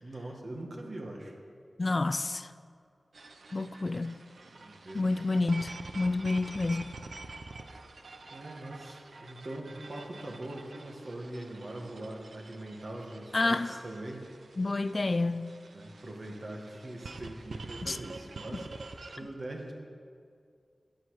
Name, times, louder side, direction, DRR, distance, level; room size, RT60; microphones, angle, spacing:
voice 1, 0.0-1.3 4.6-5.1 7.6-7.7 8.3-14.3 15.7-19.7, right 1 dB, 55° right, 1.7 m, -42 dB
voice 2, 1.8-2.5 3.5-4.2 4.9-7.0 13.3-13.8 14.6-15.5 17.8-18.0 18.5-18.6, left 2 dB, 40° left, 0.3 m, -29 dB
sound 1, 3.1-19.2, right 3 dB, 80° right, 0.7 m, -47 dB
14.0 x 9.3 x 4.9 m
wide cardioid pair, 90°, 0 cm